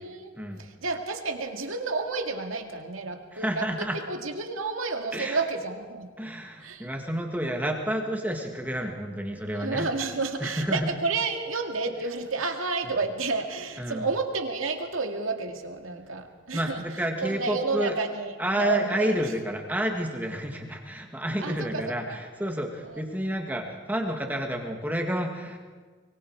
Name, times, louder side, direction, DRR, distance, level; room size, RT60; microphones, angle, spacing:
voice 1, 0.6-6.1 6.6-6.9 9.5-19.3 21.4-22.2 22.8-23.0, right 3 dB, 90° right, 4 dB, 2.3 m, -31 dB
voice 2, 3.3-4.0 5.1-5.4 6.2-9.9 10.4-10.9 13.8-14.1 16.5-17.9 18.4-25.6, equal, 10° right, 2 dB, 1.9 m, -30 dB
24.0 x 23.5 x 4.7 m, 1.5 s
head